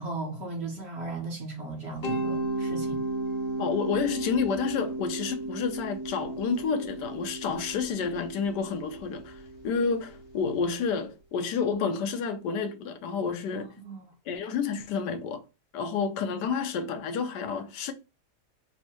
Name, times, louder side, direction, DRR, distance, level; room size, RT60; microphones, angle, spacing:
voice 1, 0.0-3.0 13.5-14.1, right 3 dB, 50° right, 0.9 m, -37 dB
Mallet percussion, 2.0-10.8, right 2 dB, 55° left, 0.6 m, -34 dB
voice 2, 3.6-13.7 14.3-15.4 15.7-17.9, left 5 dB, 80° left, 1.2 m, -30 dB
3.6 x 2.1 x 4.2 m
omnidirectional pair, 1.8 m